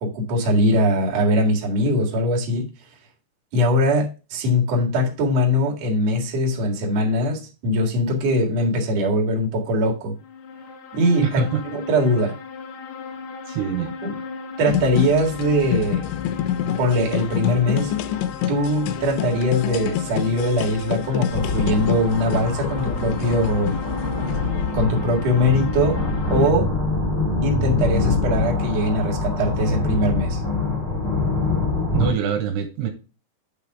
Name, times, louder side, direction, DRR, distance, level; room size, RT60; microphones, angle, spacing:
voice 1, 0.0-2.7 3.5-10.1 10.9-11.4 11.7-12.4 14.0-14.1 14.6-16.0 16.6-17.9 18.5-23.8 24.7-26.0 26.3-26.7 27.4-30.4, left 1 dB, 50° right, 2.5 m, -21 dB
sound 1, 10.2-26.5, left 5 dB, 70° left, 2.9 m, -36 dB
voice 2, 11.2-11.6 13.5-13.9 31.9-32.9, right 8 dB, 80° right, 3.1 m, -24 dB
sound 2, 14.7-24.8, left 11 dB, 90° left, 2.9 m, -28 dB
sound 3, 21.3-32.1, left 3 dB, 20° left, 2.4 m, -24 dB
8.9 x 3.8 x 4.7 m
omnidirectional pair, 5.0 m